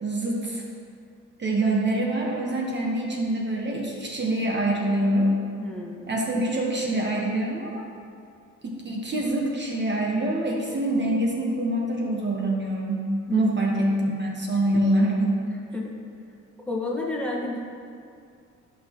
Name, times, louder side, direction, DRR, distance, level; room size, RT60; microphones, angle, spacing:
voice 1, 0.0-0.6 1.4-5.3 6.1-7.8 8.6-15.4, right 1 dB, 35° right, -2 dB, 1.3 m, -25 dB
voice 2, 5.6-6.2 13.3-13.7 15.7-15.9 16.7-17.6, left 2 dB, 5° left, -3 dB, 1.6 m, -30 dB
14.0 x 5.9 x 3.1 m, 2.3 s
cardioid pair, 90°, 30 cm